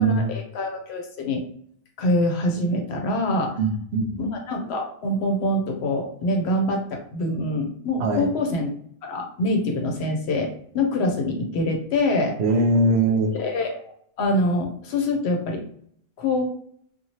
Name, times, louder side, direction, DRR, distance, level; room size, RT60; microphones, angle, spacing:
voice 1, 0.0-1.4 2.0-3.5 4.2-8.7 9.0-12.4 13.4-13.9 14.2-15.6 16.2-16.5, left 1 dB, 75° left, 2 dB, 0.9 m, -25 dB
voice 2, 3.6-4.1 8.0-8.3 12.4-13.3, right 2 dB, 75° right, 4 dB, 0.8 m, -21 dB
3.0 x 2.3 x 2.8 m, 0.64 s
omnidirectional pair, 1.1 m